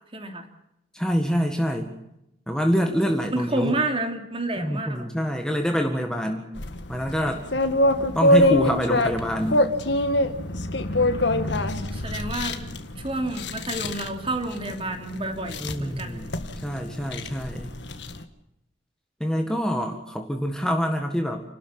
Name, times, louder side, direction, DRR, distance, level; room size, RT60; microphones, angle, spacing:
voice 1, 0.1-0.5 2.9-5.1 7.9-8.2 11.7-12.6 13.0-16.3, right 2 dB, 30° right, 5 dB, 3.0 m, -30 dB
voice 2, 0.9-1.9 2.5-3.7 4.6-6.5 6.9-7.4 8.2-9.6 15.6-17.7 19.2-21.4, equal, 5° left, 3 dB, 1.8 m, -26 dB
sound 1, 6.6-18.2, left 1 dB, 65° left, 1.8 m, -25 dB
29.5 x 13.0 x 8.9 m, 0.84 s
head